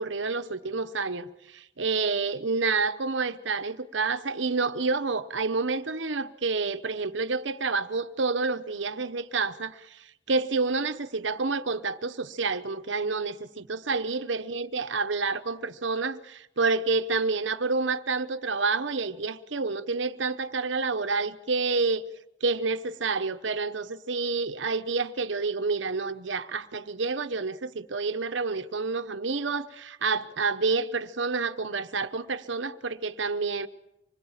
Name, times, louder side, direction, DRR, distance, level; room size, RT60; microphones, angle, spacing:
voice 1, 0.0-22.1 22.4-33.7, right 4 dB, 70° right, 1.0 m, -29 dB
26.0 x 20.5 x 7.4 m
head